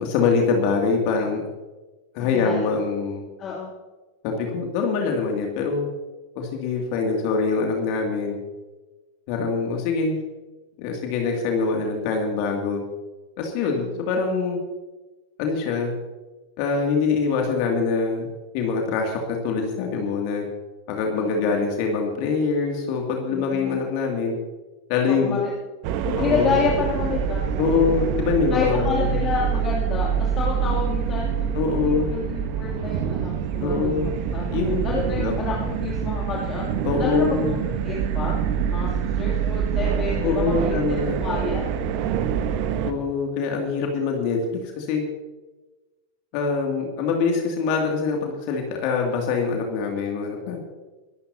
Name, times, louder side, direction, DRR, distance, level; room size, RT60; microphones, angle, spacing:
voice 1, 0.0-1.4 2.1-3.3 4.2-5.9 6.4-8.4 9.3-10.2 10.8-12.8 13.4-14.6 15.4-15.9 16.6-18.3 18.5-20.5 20.9-24.4 24.9-25.4 26.2-26.7 27.6-29.1 31.5-32.2 33.6-34.1 34.5-34.8 35.2-35.3 36.8-37.6 40.2-41.2 42.8-45.0 46.3-50.6, left 5 dB, 45° left, 1 dB, 2.5 m, -24 dB
voice 2, 2.2-2.7 3.4-3.7 13.7-13.9 21.2-21.5 23.3-23.8 25.1-25.5 26.0-27.4 28.5-36.7 37.0-38.4 38.7-38.9 39.1-40.8 41.2-41.6, left 5 dB, 30° left, -4 dB, 2.8 m, -29 dB
sound 1, 25.8-42.9, right 7 dB, 45° right, 1.1 m, -25 dB
24.0 x 13.0 x 2.8 m, 1.2 s
figure-of-eight pair, 90°, 0 cm